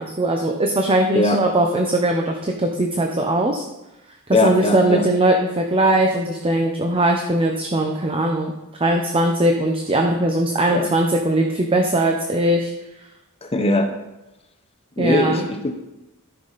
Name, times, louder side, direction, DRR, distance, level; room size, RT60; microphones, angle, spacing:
voice 1, 0.0-3.6 4.4-8.5 8.8-12.7 15.0-15.5, right 1 dB, 25° right, 2 dB, 0.7 m, -20 dB
voice 2, 4.3-5.0 10.7-10.9 13.4-13.9 15.0-15.8, left 2 dB, 25° left, 5 dB, 1.0 m, -20 dB
13.0 x 6.0 x 4.1 m, 0.98 s
head